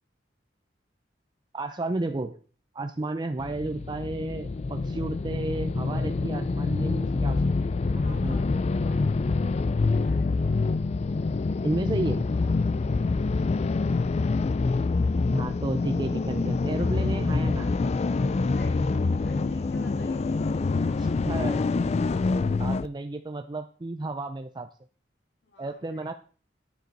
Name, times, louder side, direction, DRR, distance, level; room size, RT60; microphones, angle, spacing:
voice 1, 1.5-2.4 2.7-7.7 7.9-8.4 11.6-12.3 15.3-17.7 21.0-22.0 22.6-24.7 25.6-26.1, right 2 dB, 25° right, 7 dB, 0.5 m, -32 dB
sound 1, 3.4-22.9, left 3 dB, 35° left, 0.4 m, -26 dB
voice 2, 7.9-10.4 13.1-13.4 13.8-14.0 18.5-21.0 25.4-26.1, left 1 dB, 80° left, 0 dB, 3.3 m, -50 dB
9.5 x 6.5 x 4.6 m, 0.41 s
head